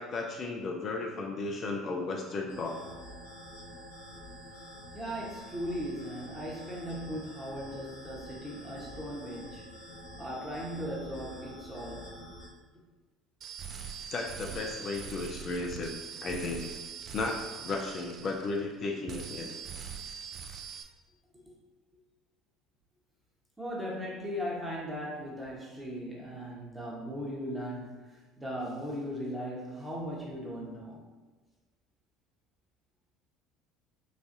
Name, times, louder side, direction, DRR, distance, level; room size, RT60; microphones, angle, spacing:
voice 1, 0.0-2.8 14.1-15.9 16.2-16.7 17.1-19.5, left 3 dB, 45° left, 1 dB, 0.4 m, -34 dB
sound 1, 2.5-12.5, equal, 80° left, 0.7 m, -47 dB
voice 2, 4.9-9.6 10.2-12.1 21.4-21.5 23.6-31.0, equal, 15° right, -3 dB, 1.1 m, -38 dB
sound 2, 13.4-18.8 19.1-20.8, right 7 dB, 50° right, 0.3 m, -42 dB
4.0 x 2.3 x 2.6 m, 1.3 s
hypercardioid pair, 70°, 0 cm